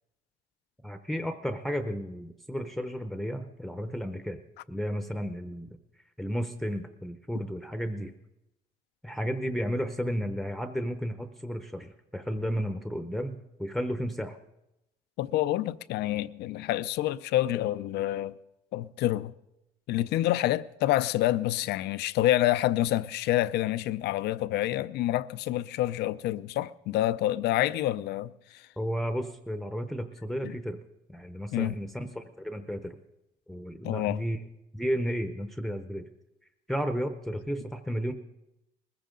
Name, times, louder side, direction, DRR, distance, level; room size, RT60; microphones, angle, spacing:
voice 1, 0.8-4.4 4.7-5.8 6.2-8.1 9.0-14.4 28.8-30.8 31.1-33.0 33.5-34.4 34.7-36.0 36.7-38.1, equal, ahead, 0.8 m, -33 dB
voice 2, 15.2-18.3 18.7-19.3 19.9-28.7 30.4-30.5 31.5-31.8 33.8-34.2, left 14 dB, 75° left, 0.5 m, -28 dB
21.0 x 15.0 x 3.8 m
cardioid pair, 110°, 17 cm